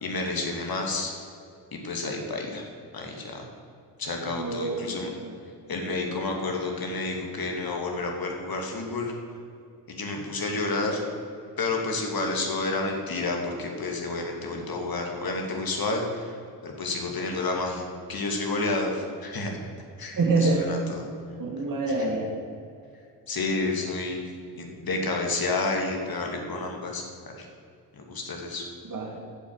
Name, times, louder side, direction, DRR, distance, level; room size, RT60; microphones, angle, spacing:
voice 1, 0.0-1.1 1.7-2.6 2.9-3.4 4.0-5.1 5.7-9.1 9.9-11.0 11.6-16.3 16.6-19.5 20.0-21.0 23.3-24.3 24.6-27.5 27.9-28.7, left 3 dB, 45° left, 2 dB, 2.5 m, -30 dB
voice 2, 4.2-5.4 20.1-20.8 21.4-22.3 28.8-29.2, right 3 dB, 40° right, 0 dB, 2.0 m, -27 dB
9.5 x 7.3 x 8.0 m, 2.4 s
hypercardioid pair, 40°, 49 cm